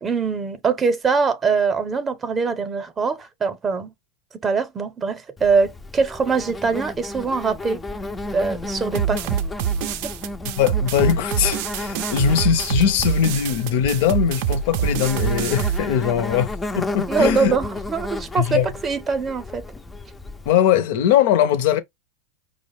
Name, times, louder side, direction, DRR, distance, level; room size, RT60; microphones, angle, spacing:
voice 1, 0.0-3.9 4.4-7.8 8.3-9.2 10.0-10.1 17.1-19.6, right 5 dB, 20° right, 0.7 m, -23 dB
Insect, 5.4-20.5, left 2 dB, 10° left, 0.4 m, -33 dB
sound 1, 8.9-15.8, right 9 dB, 65° right, 0.4 m, -25 dB
voice 2, 10.6-17.5 18.4-18.8 20.4-21.8, left 9 dB, 65° left, 0.6 m, -20 dB
4.8 x 2.1 x 3.2 m
supercardioid pair, 130°, 0 cm